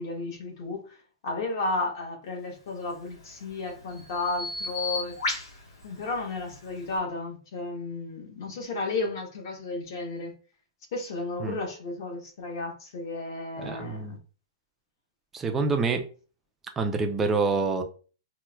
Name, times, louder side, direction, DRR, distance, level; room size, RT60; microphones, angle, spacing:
voice 1, 0.0-5.2 5.8-10.3 10.9-14.2, left 2 dB, 45° left, 1.0 m, -33 dB
Bird vocalization bird call bird song, 2.8-7.0, left 3 dB, 80° left, 1.1 m, -36 dB
voice 2, 13.6-14.2 15.3-16.1 16.8-17.8, right 4 dB, 10° right, 0.3 m, -26 dB
4.3 x 2.1 x 2.2 m
hypercardioid pair, 165°, 3 cm